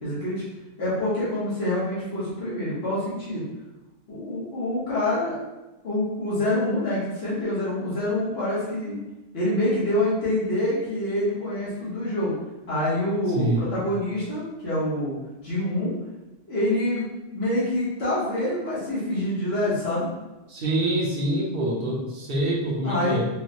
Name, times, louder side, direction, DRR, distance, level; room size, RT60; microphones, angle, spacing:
voice 1, 0.0-0.4 0.8-3.5 4.1-5.4 5.8-9.0 9.3-12.3 12.7-15.1 15.4-15.9 16.5-20.1 22.8-23.2, left 1 dB, 80° left, -10 dB, 1.4 m, -26 dB
voice 2, 13.3-13.7 20.5-23.2, right 1 dB, 65° right, -3 dB, 1.1 m, -25 dB
4.4 x 2.1 x 2.9 m, 1.1 s
omnidirectional pair, 1.0 m